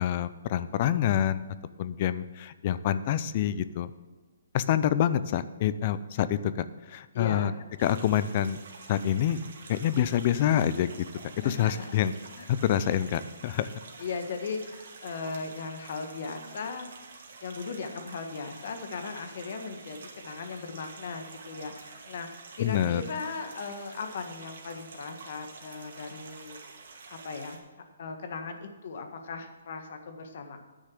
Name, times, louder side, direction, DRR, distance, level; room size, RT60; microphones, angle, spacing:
voice 1, 0.0-1.4 1.8-3.9 4.5-7.5 7.8-8.6 8.9-9.4 9.7-10.9 11.4-12.1 12.5-13.7 22.6-23.0, left 10 dB, 40° left, 14 dB, 0.5 m, -26 dB
voice 2, 7.1-7.6 11.4-11.9 12.4-12.5 14.0-16.9 17.4-22.3 22.6-26.6 27.1-27.6 28.0-30.6, left 4 dB, 55° left, 6 dB, 1.6 m, -37 dB
sound 1, 7.8-27.6, right 4 dB, 60° right, 2.2 m, -48 dB
10.0 x 6.4 x 7.6 m, 1.3 s
hypercardioid pair, 155°, 0 cm